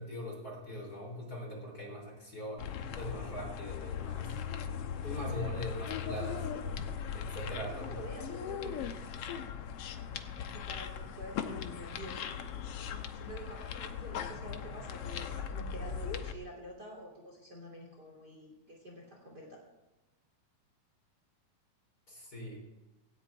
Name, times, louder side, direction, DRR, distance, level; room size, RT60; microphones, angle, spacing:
voice 1, 0.0-4.4 5.0-6.5 7.1-8.0 22.1-22.7, left 1 dB, 25° left, 0 dB, 4.0 m, -41 dB
sound 1, 2.6-16.3, left 7 dB, 70° left, 1.5 m, -39 dB
voice 2, 7.4-9.0 10.5-12.3 13.1-19.6, right 1 dB, 30° right, -1 dB, 3.2 m, -48 dB
18.0 x 17.0 x 3.5 m, 1.1 s
omnidirectional pair, 3.9 m